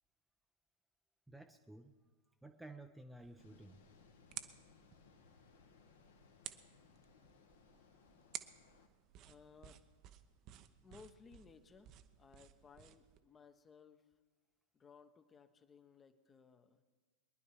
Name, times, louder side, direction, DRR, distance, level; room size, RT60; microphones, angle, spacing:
voice 1, 1.3-2.0 2.4-3.8, right 2 dB, 5° right, 5 dB, 0.6 m, -54 dB
sound 1, 3.2-13.2, right 12 dB, 35° right, 0.8 m, -55 dB
sound 2, 3.4-8.9, left 6 dB, 65° left, 1.6 m, -66 dB
voice 2, 9.2-9.8 10.8-14.1 14.7-16.8, left 5 dB, 20° left, 10 dB, 1.0 m, -61 dB
23.0 x 11.0 x 4.6 m, 1.4 s
figure-of-eight pair, 90°, 0 cm